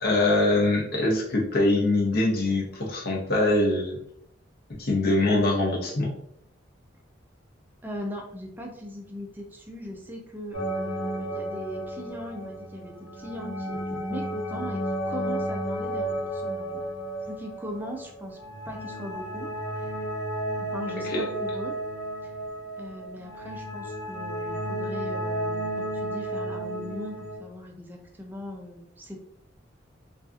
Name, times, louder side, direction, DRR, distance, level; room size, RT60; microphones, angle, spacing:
voice 1, 0.0-4.0 4.8-6.1 21.1-21.2, left 2 dB, 50° left, -2 dB, 0.7 m, -23 dB
voice 2, 7.8-16.8 17.3-18.4 18.6-20.1 20.6-21.7 22.8-29.2, equal, 10° right, 1 dB, 0.4 m, -39 dB
sound 1, 10.5-27.4, right 1 dB, 90° left, 1.0 m, -33 dB
2.7 x 2.4 x 2.4 m, 0.69 s
head